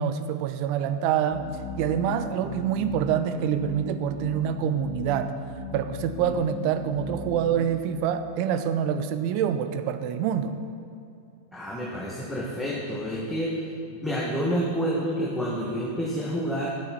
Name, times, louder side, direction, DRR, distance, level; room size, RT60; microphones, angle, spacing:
voice 1, 0.0-1.4 1.8-5.3 5.7-10.5, right 8 dB, 45° right, 10 dB, 0.7 m, -26 dB
sound 1, 1.3-7.7, left 2 dB, 50° left, 1.3 m, -37 dB
voice 2, 11.5-13.6 14.0-16.7, equal, 5° left, -5 dB, 1.6 m, -28 dB
11.5 x 8.7 x 5.8 m, 2.6 s
figure-of-eight pair, 90°, 0 cm